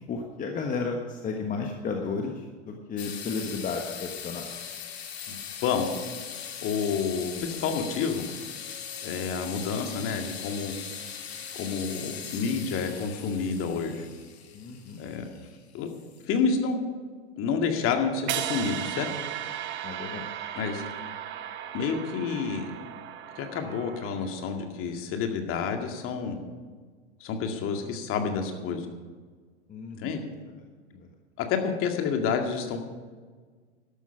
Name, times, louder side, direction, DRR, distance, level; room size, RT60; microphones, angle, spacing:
voice 1, 0.0-4.5 14.5-15.0 19.8-20.3 29.7-30.2 30.5-30.6 30.9-31.1, left 4 dB, 25° left, 2 dB, 1.4 m, -33 dB
sound 1, 3.0-16.4, left 8 dB, 65° left, 2.0 m, -40 dB
voice 2, 5.6-5.9 6.6-8.3 9.0-10.7 11.5-14.1 15.0-15.3 15.7-15.9 16.3-16.8 17.4-19.1 20.6-20.8 21.7-22.7 23.4-26.4 27.2-28.9 30.0-30.2 31.4-32.8, left 5 dB, 40° left, 4 dB, 2.1 m, -29 dB
sound 2, 18.3-24.4, right 10 dB, 35° right, 1.1 m, -36 dB
12.5 x 12.0 x 5.8 m, 1.5 s
figure-of-eight pair, 90°, 34 cm